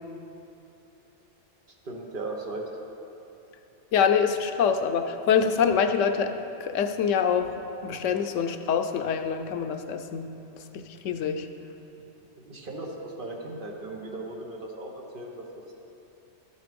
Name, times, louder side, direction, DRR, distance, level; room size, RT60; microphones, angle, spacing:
voice 1, 1.8-2.7 12.4-15.4, right 2 dB, 45° right, 0 dB, 1.3 m, -37 dB
voice 2, 3.9-6.3 6.6-7.5 7.8-10.3 10.7-11.5, left 7 dB, 85° left, 7 dB, 1.0 m, -25 dB
13.0 x 6.7 x 5.2 m, 2.9 s
omnidirectional pair, 1.2 m